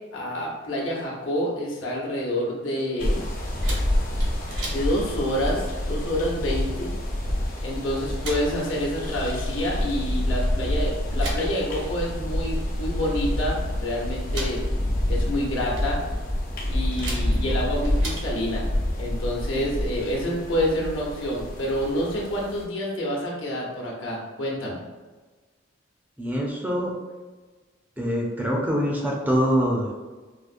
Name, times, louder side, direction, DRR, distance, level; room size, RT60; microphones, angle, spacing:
voice 1, 0.1-3.2 4.7-6.9 7.6-14.6 15.1-16.0 16.7-18.7 19.0-24.8, equal, 70° left, -3 dB, 1.0 m, -28 dB
sound 1, 3.0-22.6, left 1 dB, 45° left, 0.6 m, -28 dB
sound 2, 3.6-18.4, right 1 dB, 65° right, 0.9 m, -41 dB
voice 2, 26.2-26.9 28.0-29.9, equal, 10° right, -2 dB, 0.4 m, -24 dB
4.8 x 2.0 x 2.5 m, 1.3 s
head